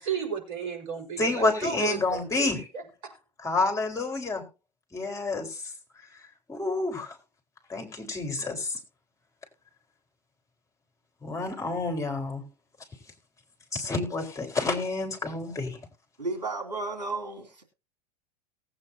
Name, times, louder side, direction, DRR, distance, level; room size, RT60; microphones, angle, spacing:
voice 1, 0.0-3.1, right 6 dB, 50° right, 4.8 m, -34 dB
voice 2, 1.2-2.7 3.4-4.4 4.9-5.6 6.5-7.1 7.7-8.8 11.2-12.5 13.7-15.8, left 3 dB, 15° left, 4.1 m, -29 dB
voice 3, 16.2-17.6, right 3 dB, 80° right, 2.9 m, -33 dB
19.0 x 8.8 x 2.7 m
figure-of-eight pair, 85°, 21 cm